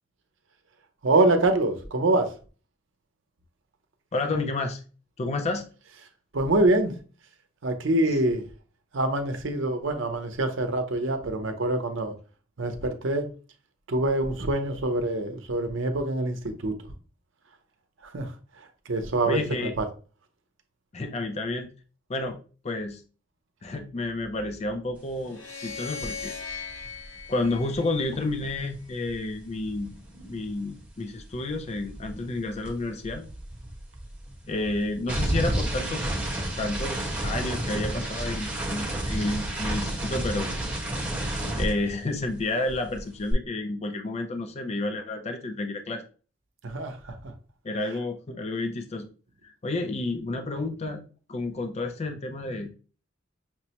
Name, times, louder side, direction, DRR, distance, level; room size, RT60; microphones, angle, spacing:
voice 1, 1.0-2.3 6.3-7.0 7.6-8.4 8.9-12.1 12.6-13.3 13.9-16.8 18.0-19.9 46.6-47.3, right 2 dB, 70° right, 0.7 m, -25 dB
voice 2, 4.1-4.8 5.2-5.7 19.3-19.7 20.9-21.7 22.1-22.4 22.6-23.0 23.6-26.3 27.3-29.9 30.3-33.2 34.5-36.2 36.6-40.5 41.6-46.0 47.6-49.1 49.4-51.0 51.3-52.7, left 2 dB, 35° left, 0.4 m, -30 dB
sound 1, 25.2-28.5, left 5 dB, 70° left, 0.9 m, -39 dB
sound 2, 26.0-26.2 26.5-30.9 31.1-42.4 42.7-43.3, right 1 dB, 10° right, 1.0 m, -32 dB
5.9 x 2.1 x 2.9 m
head